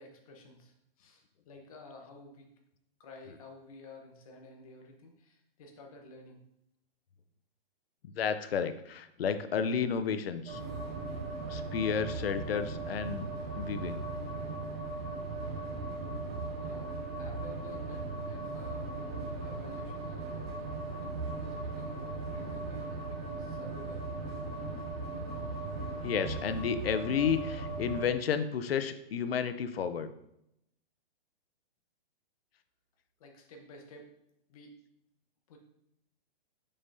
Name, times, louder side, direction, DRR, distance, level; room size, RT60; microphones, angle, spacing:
voice 1, 0.0-2.5 3.0-6.4 16.6-20.6 21.2-24.0 33.2-34.1 34.5-34.8 35.5-35.6, left 2 dB, 35° left, 2 dB, 1.1 m, -52 dB
voice 2, 8.1-10.6 11.5-13.3 13.5-14.0 26.0-30.1, left 7 dB, 85° left, 11 dB, 0.7 m, -31 dB
sound 1, 10.5-28.1, right 3 dB, 85° right, 2.4 m, -38 dB
6.7 x 5.5 x 2.7 m, 0.79 s
hypercardioid pair, 170°, 29 cm